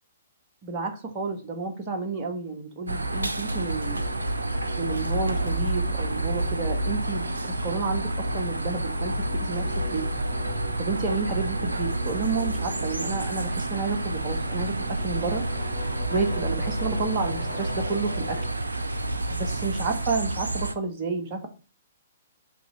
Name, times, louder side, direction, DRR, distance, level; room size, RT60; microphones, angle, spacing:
voice 1, 0.6-4.0 4.8-10.1 10.8-15.4 16.1-18.4 19.3-21.5, right 4 dB, 35° right, 3 dB, 1.4 m, -30 dB
sound 1, 2.9-20.8, right 2 dB, 75° right, 0.6 m, -29 dB
sound 2, 3.8-18.5, left 1 dB, 85° left, 1.8 m, -37 dB
7.6 x 3.1 x 4.4 m, 0.34 s
figure-of-eight pair, 120°, 0 cm